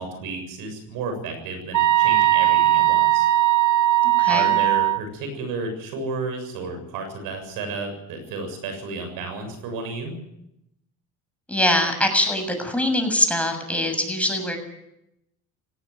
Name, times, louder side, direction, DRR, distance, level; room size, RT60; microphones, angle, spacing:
voice 1, 0.0-3.3 4.3-10.2, right 3 dB, 80° right, 6 dB, 7.3 m, -32 dB
sound 1, 1.7-5.0, right 14 dB, 60° right, 1.3 m, -18 dB
voice 2, 4.0-4.6 11.5-14.6, left 1 dB, 5° left, 5 dB, 7.2 m, -23 dB
18.0 x 16.0 x 9.3 m, 0.85 s
supercardioid pair, 85°, 34 cm